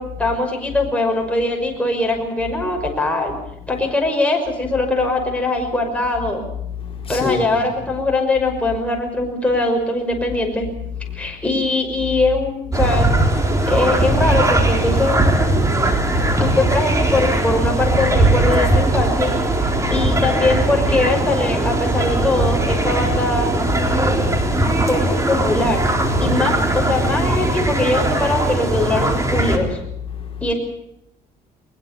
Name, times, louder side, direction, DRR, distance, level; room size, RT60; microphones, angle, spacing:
voice 1, 0.0-3.4 3.7-6.4 7.1-10.7 11.1-13.1 13.7-15.1 16.4-19.3 19.9-23.5 24.8-25.9 26.2-29.8 30.4-30.5, left 2 dB, 5° left, 5.9 m, -21 dB
voice 2, 6.7-7.6 11.0-11.3 13.5-13.7 15.6-16.4 19.6-20.0 23.9-24.9 26.3-26.4 30.1-30.5, left 6 dB, 35° left, 4.5 m, -30 dB
sound 1, 12.7-29.6, right 2 dB, 20° right, 4.1 m, -19 dB
22.0 x 21.0 x 7.0 m
cardioid pair, 110°, 17 cm